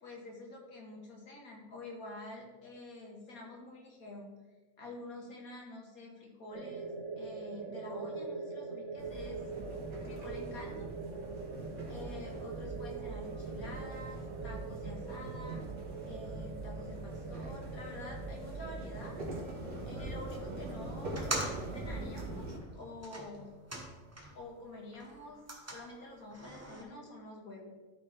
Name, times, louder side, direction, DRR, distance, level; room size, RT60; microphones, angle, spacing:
voice 1, 0.0-4.3 4.8-9.4 10.0-10.9 11.9-15.6 16.0-19.2 19.8-23.5 24.3-27.7, left 2 dB, 65° left, -1 dB, 1.9 m, -48 dB
sound 1, 6.5-22.1, right 4 dB, 60° right, 1.1 m, -44 dB
sound 2, 9.0-22.6, right 2 dB, 80° right, 1.9 m, -43 dB
sound 3, 21.1-24.5 24.8-26.8, right 1 dB, 15° right, 0.7 m, -43 dB
12.5 x 4.4 x 3.2 m, 1.3 s
omnidirectional pair, 1.6 m